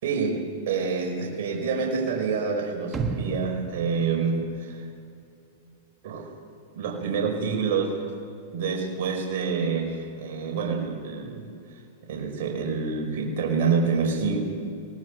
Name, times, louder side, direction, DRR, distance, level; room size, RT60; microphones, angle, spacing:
voice 1, 0.0-4.8 6.0-6.3 6.7-8.1 8.5-11.5 12.1-14.4, right 5 dB, 60° right, -1 dB, 5.2 m, -27 dB
sound 1, 2.9-5.1 5.4-5.5, right 4 dB, 15° right, 1.4 m, -34 dB
23.5 x 19.0 x 6.4 m, 2.6 s
hypercardioid pair, 135°, 0 cm